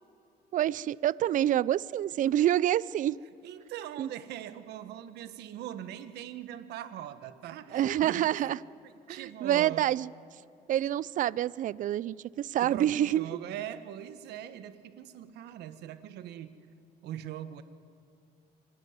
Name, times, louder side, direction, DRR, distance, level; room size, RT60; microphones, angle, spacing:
voice 1, 0.5-3.2 4.0-4.1 7.7-8.6 9.1-10.1 10.7-13.4, right 12 dB, 50° right, 21 dB, 0.5 m, -27 dB
voice 2, 3.4-8.6 9.1-9.9 12.6-16.6 17.0-17.6, right 11 dB, 80° right, 11 dB, 1.4 m, -41 dB
25.0 x 17.5 x 9.6 m, 2.6 s
cardioid pair, 110°, 17 cm